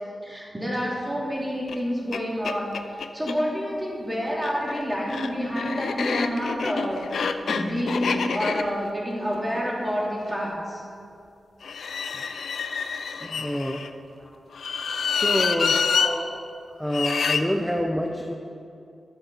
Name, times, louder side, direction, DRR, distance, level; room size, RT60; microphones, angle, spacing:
voice 1, 0.2-7.1 7.5-10.8 14.2-14.3 15.9-16.3 17.4-17.5, equal, 15° right, -4 dB, 2.9 m, -28 dB
sound 1, 1.7-1.8 2.1-2.2 2.4-3.4 4.3-10.5 11.6-13.9 14.5-16.1 16.9-17.4, left 5 dB, 85° left, 0.5 m, -27 dB
voice 2, 13.1-13.9 15.1-15.9 16.8-18.3, equal, 5° left, 2 dB, 0.7 m, -27 dB
11.0 x 7.7 x 5.7 m, 2.5 s
wide cardioid pair, 90°, 0 cm